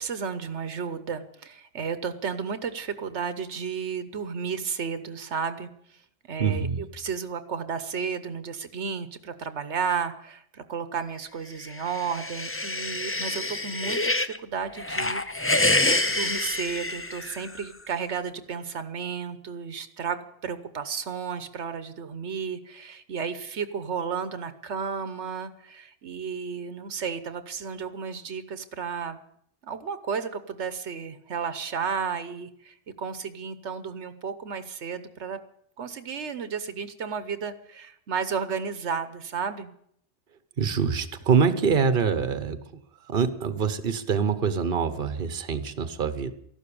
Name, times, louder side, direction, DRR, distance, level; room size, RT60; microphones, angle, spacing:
voice 1, 0.0-5.7 6.3-29.2 29.6-35.4 35.8-39.7, right 6 dB, 85° right, 12 dB, 1.3 m, -33 dB
voice 2, 6.4-6.8 40.6-42.6 43.1-46.3, right 6 dB, 55° right, 11 dB, 1.2 m, -25 dB
sound 1, 11.7-14.4 14.8-17.6, left 2 dB, 15° left, 0.5 m, -27 dB
14.0 x 12.0 x 8.6 m, 0.69 s
omnidirectional pair, 1.1 m